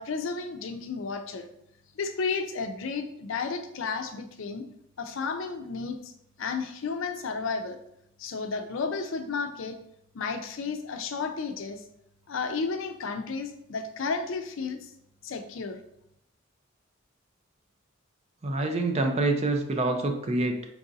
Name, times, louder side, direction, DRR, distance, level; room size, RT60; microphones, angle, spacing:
voice 1, 0.0-1.5 2.0-4.6 5.0-6.1 6.4-7.8 8.2-9.8 10.1-11.8 12.3-14.9 15.2-15.8, left 4 dB, 70° left, 7 dB, 0.5 m, -32 dB
voice 2, 18.4-20.7, right 2 dB, 30° right, 4 dB, 0.4 m, -26 dB
4.6 x 2.5 x 3.9 m, 0.75 s
head